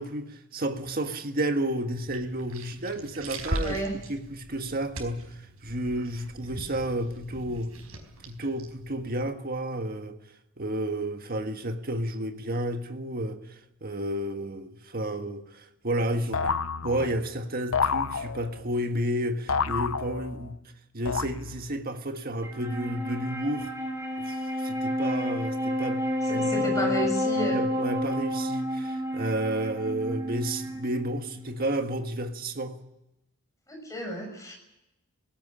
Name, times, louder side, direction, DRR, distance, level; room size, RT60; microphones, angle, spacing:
voice 1, 0.0-3.8 4.1-7.7 8.3-10.2 10.6-16.5 16.8-20.6 20.9-23.7 24.2-27.0 27.5-32.8, right 1 dB, 45° right, 1.7 m, -31 dB
sound 1, 2.0-9.3, right 1 dB, 85° right, 4.6 m, -40 dB
voice 2, 3.5-4.0 26.2-27.6 33.7-34.5, right 1 dB, 15° left, 6.7 m, -32 dB
sound 2, 16.3-17.3 17.7-18.7 19.5-20.5 21.1-21.8, left 5 dB, 65° left, 0.8 m, -29 dB
Wind instrument woodwind instrument, 22.4-31.9, left 1 dB, 15° right, 3.8 m, -30 dB
18.5 x 17.0 x 10.0 m
head